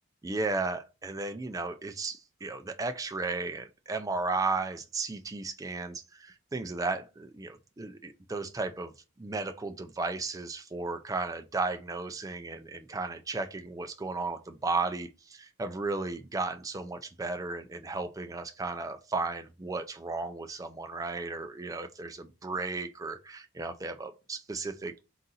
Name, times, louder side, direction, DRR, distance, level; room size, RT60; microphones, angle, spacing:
voice 1, 0.2-24.9, right 3 dB, 15° right, 0.4 m, -34 dB
3.8 x 2.5 x 4.1 m
head